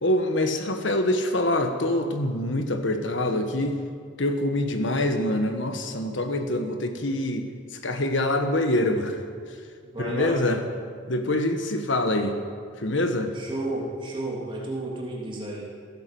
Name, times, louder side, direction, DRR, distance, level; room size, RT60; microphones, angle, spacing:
voice 1, 0.0-3.8 4.2-7.5 7.8-9.2 10.0-10.6 11.1-12.4 12.8-13.3, left 1 dB, 65° left, 7 dB, 1.4 m, -25 dB
voice 2, 9.9-10.6 13.3-15.6, right 1 dB, 25° right, -3 dB, 3.1 m, -32 dB
16.5 x 10.5 x 7.8 m, 2.1 s
head